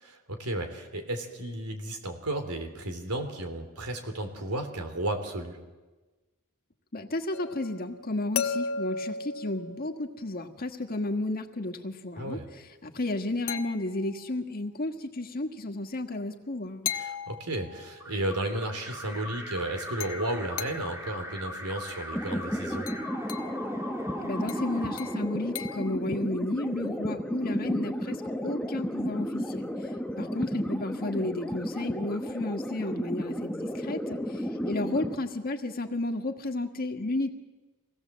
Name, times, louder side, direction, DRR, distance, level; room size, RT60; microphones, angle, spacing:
voice 1, 0.0-5.6 12.2-12.5 16.9-22.9, right 1 dB, 85° right, 5 dB, 3.5 m, -33 dB
voice 2, 6.9-12.4 12.8-16.9 24.2-28.2 28.4-29.7 30.2-37.3, left 2 dB, 45° left, 5 dB, 1.7 m, -32 dB
sound 1, 7.3-10.4 13.5-14.3 16.9-18.1 20.0-21.1 21.9-22.1 22.9-23.6 24.5-26.0, left 6 dB, 70° left, 1.2 m, -36 dB
Alarm, 18.0-25.9, left 1 dB, 10° right, 2.0 m, -40 dB
sound 2, 22.1-35.2, equal, 5° left, 1.0 m, -33 dB
26.0 x 17.5 x 7.5 m, 1.2 s
head